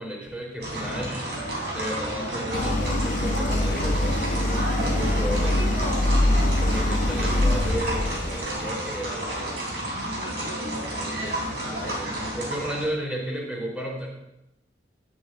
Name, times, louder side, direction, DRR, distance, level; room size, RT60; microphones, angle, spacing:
voice 1, 0.0-1.4 1.7-6.0 6.6-9.7 10.9-11.4 11.8-14.1, equal, 10° right, -6 dB, 3.5 m, -34 dB
sound 1, 0.6-12.9, right 1 dB, 75° right, 3.6 m, -31 dB
Idling, 2.5-8.6, left 1 dB, 45° left, 0.6 m, -24 dB
11.5 x 11.5 x 2.5 m, 0.86 s
head